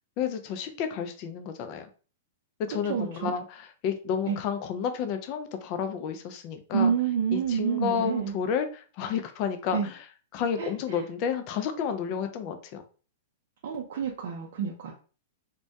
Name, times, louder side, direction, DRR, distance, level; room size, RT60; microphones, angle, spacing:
voice 1, 0.2-1.9 2.6-6.9 7.3-10.0 10.3-12.8, left 7 dB, 45° left, 7 dB, 0.4 m, -31 dB
voice 2, 2.9-3.3 4.3-4.4 6.7-8.3 9.7-9.9 10.6-11.0 13.6-14.9, right 7 dB, 65° right, -2 dB, 0.5 m, -28 dB
2.2 x 2.1 x 2.7 m, 0.38 s
hypercardioid pair, 125°, 0 cm